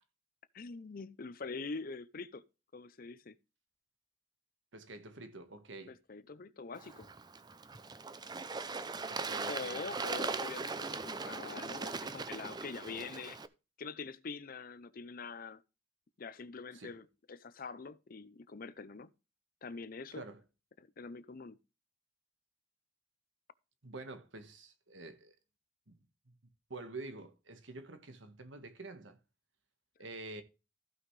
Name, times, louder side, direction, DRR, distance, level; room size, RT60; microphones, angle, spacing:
voice 1, 0.5-2.4 2.7-3.4 5.9-7.1 9.5-13.4 13.8-15.6 16.2-19.1 19.6-20.2 20.8-21.6, left 4 dB, 50° left, 0.6 m, -44 dB
voice 2, 4.7-6.0 9.1-9.8 16.7-16.9 20.1-20.4 23.8-25.3 25.9-26.3 26.7-29.2 30.0-30.4, right 2 dB, 70° right, 1.5 m, -47 dB
Bird / Water, 6.7-13.5, right 4 dB, 20° right, 0.5 m, -40 dB
15.0 x 5.6 x 3.2 m
head